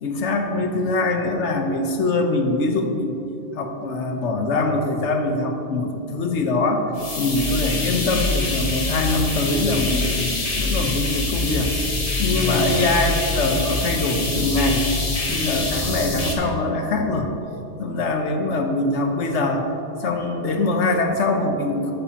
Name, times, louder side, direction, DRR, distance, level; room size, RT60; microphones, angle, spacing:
voice 1, 0.0-3.2 3.5-10.2 10.6-11.7 12.2-14.9 15.3-17.3 17.8-19.7 20.0-21.9, left 2 dB, 80° left, 4 dB, 1.3 m, -23 dB
sound 1, 7.0-16.3, left 3 dB, 35° left, 1.1 m, -25 dB
14.0 x 9.2 x 2.9 m, 2.9 s
omnidirectional pair, 1.2 m